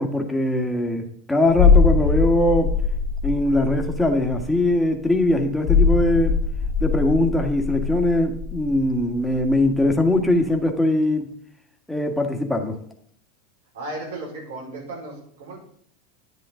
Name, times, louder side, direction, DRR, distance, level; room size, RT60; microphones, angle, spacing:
voice 1, 0.0-2.7 3.2-6.4 6.8-11.3 11.9-12.8, left 1 dB, 5° left, 2 dB, 1.8 m, -21 dB
sound 1, 1.5-9.9 10.2-10.4, left 5 dB, 60° left, 1.4 m, -22 dB
voice 2, 13.7-15.6, right 2 dB, 85° right, -4 dB, 4.7 m, -35 dB
11.0 x 9.3 x 3.8 m, 0.64 s
hypercardioid pair, 100°, 0 cm